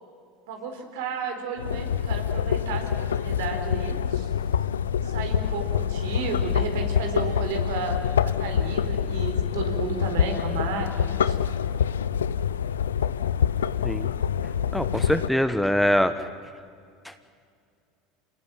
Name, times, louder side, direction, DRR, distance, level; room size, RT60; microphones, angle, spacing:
voice 1, 0.5-4.3 5.0-11.4, right 5 dB, 70° right, 4 dB, 4.2 m, -33 dB
sound 1, 1.6-15.3, left 8 dB, 80° left, 0.6 m, -26 dB
voice 2, 14.7-16.1, equal, 5° left, 11 dB, 1.4 m, -23 dB
28.0 x 18.5 x 9.4 m, 2.3 s
hypercardioid pair, 75°, 0 cm